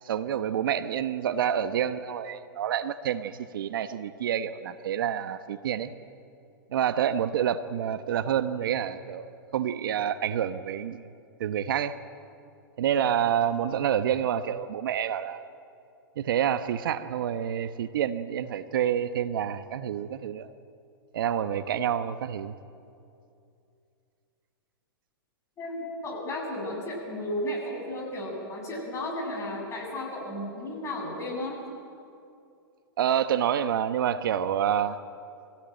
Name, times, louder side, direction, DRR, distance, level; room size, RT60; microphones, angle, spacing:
voice 1, 0.0-5.9 6.7-11.1 11.4-12.0 12.8-15.5 16.2-20.5 21.1-22.6 33.0-35.0, right 9 dB, 70° right, 12 dB, 1.0 m, -28 dB
voice 2, 25.6-31.6, left 1 dB, 25° left, -1 dB, 7.5 m, -34 dB
24.0 x 17.0 x 8.9 m, 2.5 s
hypercardioid pair, 120°, 12 cm